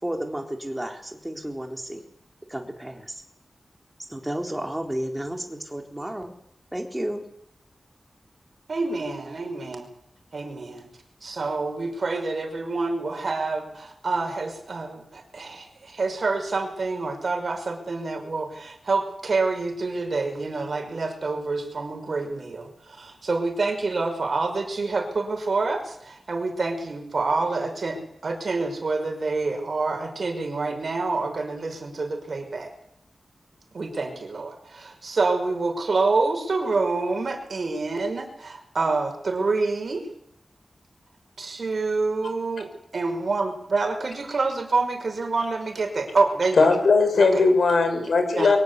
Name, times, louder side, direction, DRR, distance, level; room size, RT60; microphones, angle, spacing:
voice 1, 0.0-2.0 2.5-3.2 4.1-6.3 6.7-7.2, right 1 dB, 10° right, 3 dB, 4.1 m, -32 dB
voice 2, 8.7-9.9 10.3-10.9 11.2-32.7 33.7-40.1 41.4-46.7 47.1-47.5 48.4-48.6, right 3 dB, 60° right, 5 dB, 5.8 m, -27 dB
voice 3, 46.6-48.6, left 4 dB, 85° left, 7 dB, 5.7 m, -19 dB
23.5 x 18.5 x 8.4 m, 0.73 s
wide cardioid pair, 100°, 0 cm